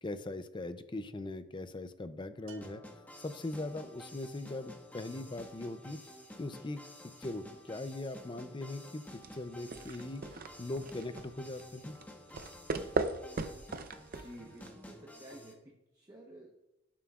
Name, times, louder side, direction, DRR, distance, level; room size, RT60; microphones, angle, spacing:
voice 1, 0.0-2.8 3.2-6.0 6.4-6.8 7.2-10.2 10.6-12.0, left 2 dB, 25° left, 11 dB, 0.5 m, -40 dB
Bell, 2.5-3.8, right 5 dB, 80° right, 1.0 m, -58 dB
sound 1, 2.6-15.5, equal, 10° left, 1.2 m, -52 dB
sound 2, 9.2-14.8, right 3 dB, 45° right, 0.6 m, -39 dB
voice 2, 14.2-16.6, right 1 dB, 20° right, -1 dB, 1.0 m, -52 dB
17.5 x 7.5 x 2.4 m, 0.95 s
head